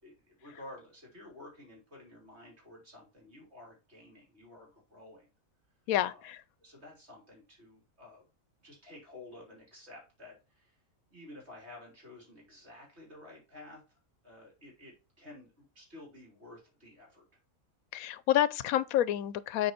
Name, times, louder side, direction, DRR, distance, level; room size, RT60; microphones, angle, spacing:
voice 1, 0.0-5.3 6.1-6.3 6.6-8.3 8.6-10.8 11.1-13.8 14.2-17.2, left 2 dB, 50° right, 4.1 m, -52 dB
voice 2, 5.9-6.4 17.9-19.7, left 12 dB, 85° left, 1.0 m, -28 dB
7.8 x 4.6 x 4.2 m
omnidirectional pair, 1.5 m